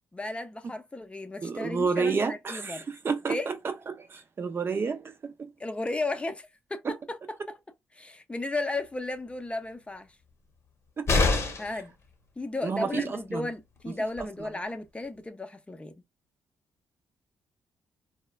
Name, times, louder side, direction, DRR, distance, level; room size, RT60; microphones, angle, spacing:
voice 1, 0.1-2.9 3.3-3.5 5.6-7.6 7.9-10.1 11.6-11.9 12.4-15.9, left 2 dB, 20° left, 0.5 m, -34 dB
voice 2, 1.4-3.5 3.9-5.5 6.8-6.9 11.0-11.3 12.6-13.5 14.2-14.5, right 5 dB, 40° right, 0.6 m, -30 dB
sound 1, 11.1-11.8 13.8-13.9 14.2-14.3, left 3 dB, 50° left, 0.8 m, -24 dB
3.0 x 2.1 x 2.3 m
supercardioid pair, 60°, 6 cm